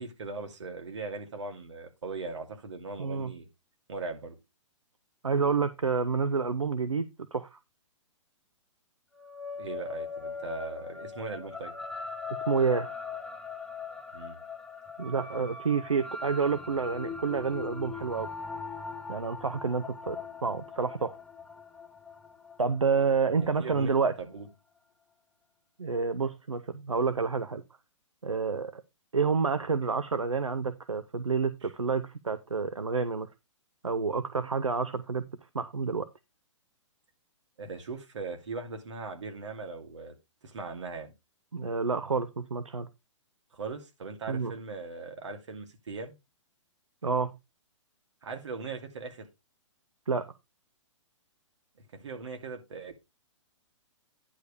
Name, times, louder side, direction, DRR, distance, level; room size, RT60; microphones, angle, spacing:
voice 1, 0.0-3.5 3.9-4.4 9.6-11.7 14.1-14.4 23.4-24.5 37.6-40.1 40.4-41.1 43.5-46.2 48.2-49.3 51.8-53.0, right 4 dB, 65° right, 2.5 m, -39 dB
voice 2, 3.0-3.3 5.2-7.6 12.3-12.9 15.0-18.3 19.1-21.2 22.6-24.1 25.8-27.6 28.2-28.8 29.1-33.3 33.8-35.3 35.5-36.1 41.5-42.9 44.3-44.5 47.0-47.3 50.1-50.3, right 5 dB, 85° right, 0.7 m, -29 dB
sound 1, 9.2-23.9, left 5 dB, 5° left, 1.1 m, -40 dB
10.0 x 4.8 x 5.1 m
figure-of-eight pair, 120°, 16 cm